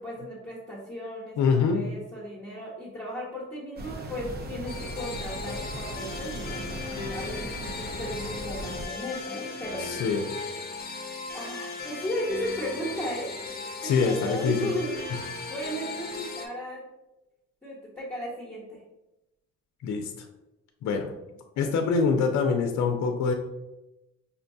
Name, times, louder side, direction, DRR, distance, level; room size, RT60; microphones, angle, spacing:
voice 1, 0.0-10.8 11.3-13.3 14.0-15.2 15.5-16.8 17.6-18.8, equal, 10° left, -6 dB, 1.0 m, -36 dB
voice 2, 1.4-1.8 9.8-10.3 13.8-14.7 19.8-20.1 20.8-21.1 21.6-23.3, left 5 dB, 65° left, 4 dB, 0.5 m, -25 dB
sound 1, 3.8-8.9, right 1 dB, 35° right, 0.5 m, -38 dB
sound 2, 4.7-16.5, left 4 dB, 30° left, 0.7 m, -37 dB
5.5 x 2.2 x 2.6 m, 0.97 s
cardioid pair, 90°, 30 cm